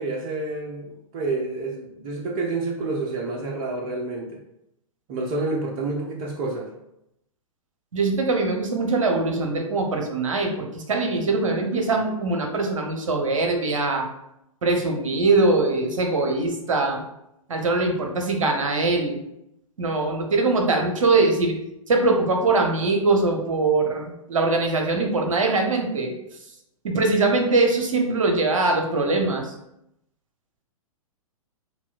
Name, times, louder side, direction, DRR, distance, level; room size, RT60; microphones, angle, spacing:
voice 1, 0.0-4.4 5.1-6.7, right 3 dB, 35° right, 0 dB, 0.6 m, -29 dB
voice 2, 7.9-14.1 14.6-17.0 17.5-19.2 19.8-21.5 21.9-26.1 26.8-29.5, right 3 dB, 65° right, 3 dB, 0.8 m, -22 dB
6.9 x 2.3 x 2.4 m, 0.82 s
figure-of-eight pair, 110°, 18 cm